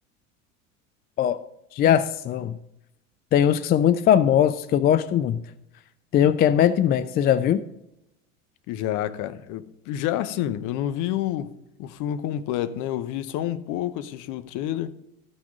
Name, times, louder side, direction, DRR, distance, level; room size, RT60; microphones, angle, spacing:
voice 1, 1.7-2.6 3.3-5.4 6.1-7.6, left 10 dB, 25° left, 0.4 m, -20 dB
voice 2, 8.7-11.5 11.8-14.9, left 12 dB, 50° left, 0.9 m, -29 dB
13.5 x 5.9 x 5.2 m
hypercardioid pair, 75°, 40 cm